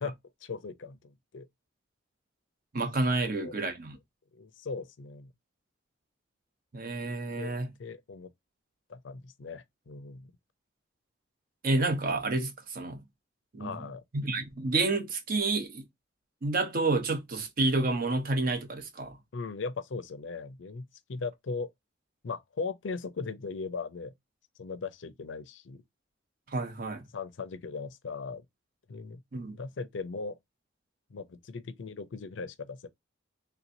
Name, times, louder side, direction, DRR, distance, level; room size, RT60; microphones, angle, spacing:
voice 1, 0.0-1.5 3.2-3.6 4.3-5.3 7.4-8.3 8.9-10.3 13.6-14.0 19.3-21.7 22.2-24.1 24.6-25.8 27.1-28.4 28.9-29.2 29.5-30.4 31.1-32.9, left 4 dB, 90° left, 0.5 m, -38 dB
voice 2, 2.7-4.0 6.7-7.7 11.6-13.0 13.5-13.9 14.1-15.8 16.4-19.2 26.5-27.0 29.3-29.6, right 2 dB, 50° right, 0.8 m, -29 dB
3.4 x 2.9 x 2.6 m
head